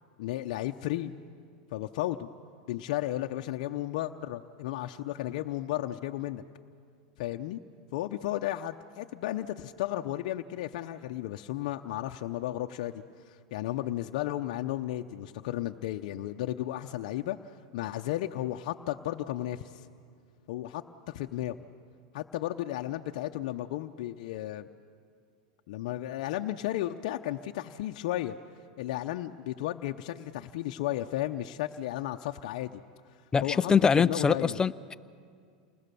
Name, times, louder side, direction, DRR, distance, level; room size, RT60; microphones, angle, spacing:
voice 1, 0.2-1.1 1.7-2.3 2.7-6.4 7.2-7.6 7.9-19.9 20.5-21.6 22.1-24.7 25.7-28.3 28.8-32.8 33.4-33.7 34.1-34.6, left 14 dB, 70° left, 4 dB, 0.8 m, -34 dB
voice 2, 33.3-35.0, left 6 dB, 15° left, 16 dB, 0.5 m, -24 dB
29.5 x 20.5 x 6.9 m, 2.2 s
supercardioid pair, 120°, 4 cm